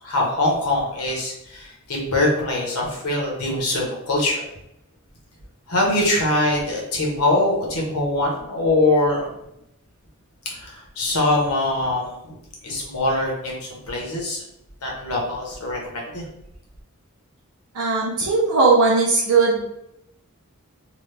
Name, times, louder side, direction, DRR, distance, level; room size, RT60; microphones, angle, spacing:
voice 1, 0.0-4.4 5.7-9.3 10.4-12.4 12.6-14.4 14.8-16.2, left 2 dB, 85° left, -2 dB, 1.1 m, -23 dB
voice 2, 17.7-19.7, right 4 dB, 80° right, -6 dB, 0.7 m, -18 dB
3.0 x 2.3 x 3.3 m, 0.80 s
head